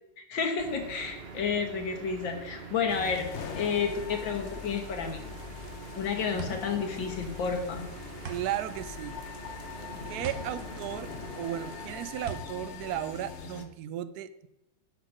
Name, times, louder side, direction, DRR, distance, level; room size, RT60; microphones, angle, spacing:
voice 1, 0.2-3.3 3.6-5.2 6.0-7.9, left 5 dB, 85° left, 5 dB, 2.0 m, -31 dB
sound 1, 0.6-12.0, right 4 dB, 40° right, 1.1 m, -45 dB
sound 2, 2.9-13.7, left 7 dB, 50° left, 0.9 m, -42 dB
sound 3, 6.4-13.9, right 5 dB, 85° right, 1.9 m, -44 dB
voice 2, 8.3-9.2 10.1-11.1 11.4-14.5, right 12 dB, 70° right, 15 dB, 1.0 m, -35 dB
10.0 x 6.1 x 6.2 m, 0.89 s
omnidirectional pair, 2.0 m